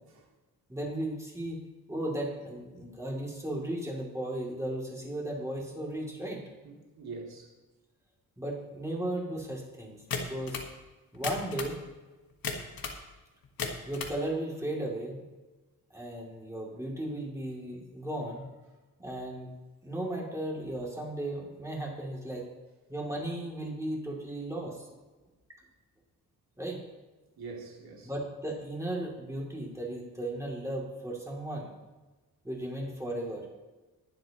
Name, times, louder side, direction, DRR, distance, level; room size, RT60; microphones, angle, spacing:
voice 1, 0.7-1.6 1.9-6.4 8.4-10.6 11.1-11.8 13.9-15.2 15.9-18.5 19.0-19.5 19.8-22.5 22.9-24.9 26.6-26.8 28.0-31.7 32.4-33.5, right 1 dB, 10° right, -2 dB, 2.7 m, -35 dB
voice 2, 6.6-7.6 27.4-28.1, right 4 dB, 85° right, -2 dB, 2.7 m, -44 dB
sound 1, 10.1-10.7 11.1-11.8 12.4-13.0 13.4-14.2, left 5 dB, 70° left, 1.5 m, -35 dB
20.5 x 7.8 x 3.0 m, 1.2 s
wide cardioid pair, 130°, 36 cm